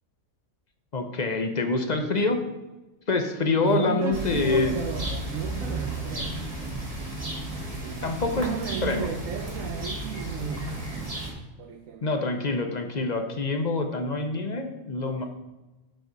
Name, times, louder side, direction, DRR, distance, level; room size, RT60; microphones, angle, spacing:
voice 1, 0.9-2.4 3.1-4.7 8.0-8.5 8.8-9.1 12.0-15.2, left 3 dB, 40° left, 5 dB, 0.7 m, -26 dB
voice 2, 3.6-6.7 7.6-10.9 11.6-12.3 15.1-15.2, right 7 dB, 85° right, 6 dB, 1.1 m, -34 dB
sound 1, 4.1-11.3, right 2 dB, 30° right, 1.5 m, -33 dB
8.3 x 6.2 x 3.9 m, 1.1 s
omnidirectional pair, 1.4 m